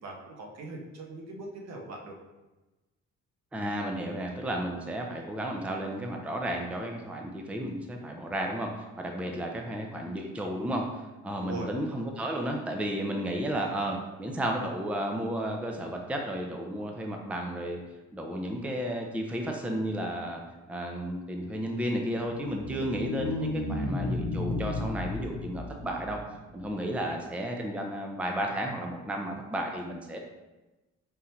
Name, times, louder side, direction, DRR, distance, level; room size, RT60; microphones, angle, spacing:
voice 1, 0.0-2.2 11.4-11.8 27.0-27.2, right 2 dB, 60° right, 0 dB, 0.9 m, -41 dB
voice 2, 3.5-17.8 18.1-20.4 20.7-30.2, right 1 dB, 5° right, 2 dB, 0.5 m, -33 dB
sound 1, 22.2-26.7, left 2 dB, 65° left, 0.8 m, -33 dB
3.7 x 2.8 x 4.3 m, 1.1 s
cardioid pair, 90°, 30 cm